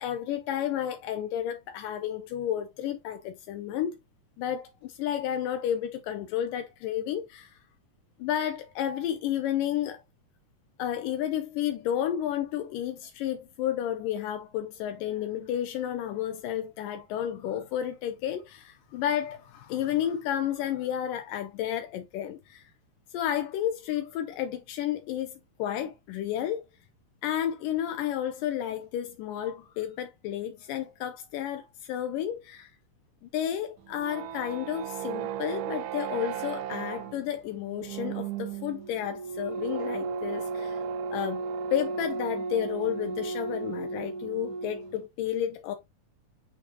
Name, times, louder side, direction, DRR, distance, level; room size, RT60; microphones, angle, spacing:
voice 1, 0.0-4.0 4.4-7.5 8.2-10.0 10.8-22.7 23.1-26.7 27.2-32.7 33.2-40.8 41.1-41.4 41.7-45.8, left 10 dB, 85° left, 2.4 m, -31 dB
sound 1, 33.8-45.0, right 5 dB, 80° right, 2.2 m, -35 dB
8.4 x 4.3 x 2.7 m
omnidirectional pair, 3.8 m